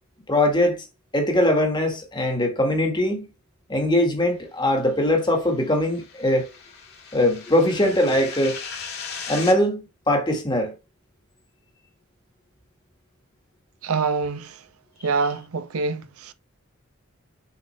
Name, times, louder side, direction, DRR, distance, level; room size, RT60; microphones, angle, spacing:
voice 1, 0.3-0.8 1.1-3.2 3.7-6.5 7.1-8.6 9.3-9.8 10.1-10.7, left 1 dB, 20° left, 1.5 m, -21 dB
sound 1, 5.1-9.6, left 6 dB, 50° left, 2.0 m, -38 dB
voice 2, 13.8-14.6 15.0-16.3, right 4 dB, 90° right, 0.6 m, -26 dB
6.9 x 4.2 x 3.2 m
head